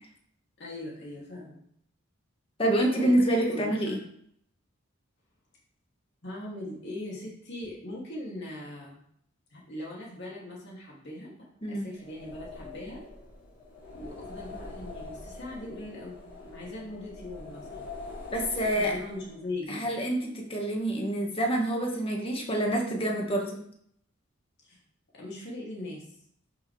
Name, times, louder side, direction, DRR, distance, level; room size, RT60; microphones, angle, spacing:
voice 1, 0.6-1.6 2.9-3.7 6.2-9.0 9.5-11.3 11.7-13.0 13.9-17.9 18.6-19.9 24.6-24.8 25.2-26.2, left 1 dB, 55° left, -4 dB, 2.7 m, -40 dB
voice 2, 2.6-4.0 11.6-11.9 18.3-18.9 19.7-23.6, right 1 dB, 30° left, 1 dB, 1.7 m, -27 dB
sound 1, 11.9-19.5, left 3 dB, 75° left, 3.3 m, -44 dB
11.0 x 6.6 x 3.4 m, 0.67 s
head